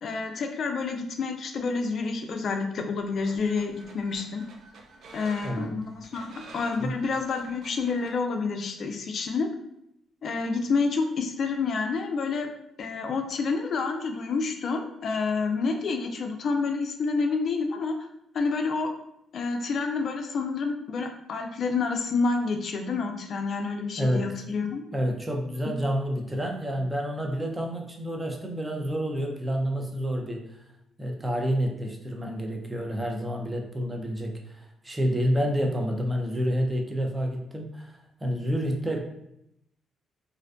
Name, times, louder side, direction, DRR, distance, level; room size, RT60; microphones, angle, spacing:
voice 1, 0.0-4.4 5.1-9.5 10.2-12.5 12.8-18.1 18.3-18.9 19.3-24.8, left 4 dB, 55° left, 4 dB, 0.3 m, -28 dB
sound 1, 3.0-8.2, right 3 dB, 70° right, 0.4 m, -49 dB
voice 2, 5.4-5.8 6.8-7.0 24.0-24.4 24.9-30.6 31.0-39.0, equal, 15° right, 1 dB, 0.5 m, -29 dB
2.5 x 2.1 x 2.4 m, 0.80 s
cardioid pair, 90°, 0 cm